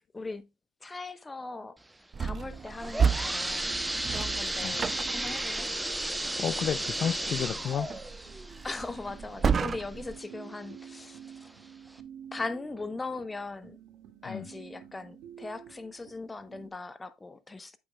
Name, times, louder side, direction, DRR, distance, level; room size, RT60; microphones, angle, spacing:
voice 1, 0.1-0.5 0.8-1.7 2.2-5.7 8.6-11.2 12.3-13.8 14.2-17.8, left 3 dB, 20° left, 0.9 m, -39 dB
sound 1, 2.1-10.2, right 6 dB, 35° right, 0.3 m, -33 dB
sound 2, 2.2-16.7, right 9 dB, 70° right, 2.1 m, -52 dB
sound 3, 2.5-10.1 10.6-10.7 11.4-11.5 12.0-12.1, right 1 dB, 10° right, 0.8 m, -34 dB
voice 2, 6.4-7.9 14.2-14.5, left 9 dB, 50° left, 0.4 m, -31 dB
8.4 x 8.1 x 2.3 m
supercardioid pair, 85°, 0 cm